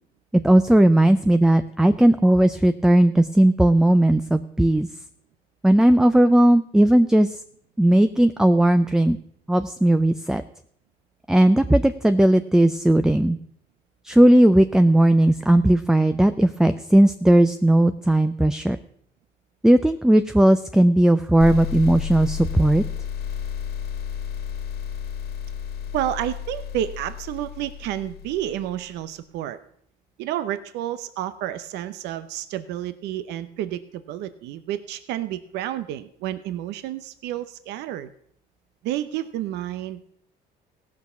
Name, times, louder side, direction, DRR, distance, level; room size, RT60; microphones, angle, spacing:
voice 1, 0.3-4.9 5.6-7.3 7.8-9.2 9.5-10.4 11.3-13.4 14.0-18.8 19.6-22.8, right 1 dB, 5° right, 10 dB, 0.4 m, -17 dB
sound 1, 21.4-28.9, left 8 dB, 70° left, 1.5 m, -32 dB
voice 2, 25.9-29.6 30.2-38.1 38.8-40.1, right 12 dB, 85° right, 12 dB, 0.7 m, -30 dB
16.0 x 6.4 x 6.9 m, 0.64 s
cardioid pair, 110°, 17 cm